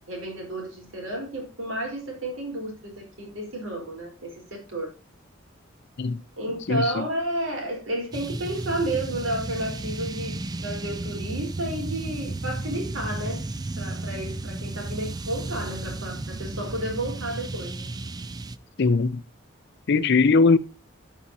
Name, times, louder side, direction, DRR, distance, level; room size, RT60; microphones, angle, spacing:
voice 1, 0.1-4.9 6.4-13.4 13.8-17.9, right 1 dB, 75° right, 4.0 m, -31 dB
voice 2, 6.7-7.0 18.8-19.2 19.9-20.6, left 4 dB, 55° left, 0.6 m, -20 dB
sound 1, 8.1-18.6, right 2 dB, 20° right, 0.4 m, -33 dB
13.0 x 5.7 x 2.7 m
head